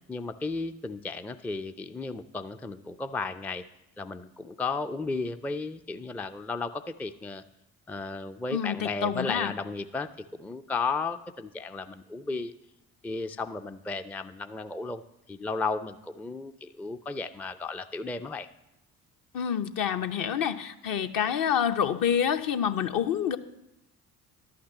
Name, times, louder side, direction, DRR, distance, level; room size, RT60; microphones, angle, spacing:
voice 1, 0.1-3.6 4.0-7.4 7.9-10.1 10.4-12.5 13.0-15.0 15.3-18.5, left 3 dB, 5° left, 10 dB, 0.4 m, -34 dB
voice 2, 8.5-9.5 19.3-23.4, left 8 dB, 50° left, 7 dB, 0.8 m, -27 dB
11.0 x 5.9 x 7.4 m, 0.89 s
figure-of-eight pair, 50°, 44 cm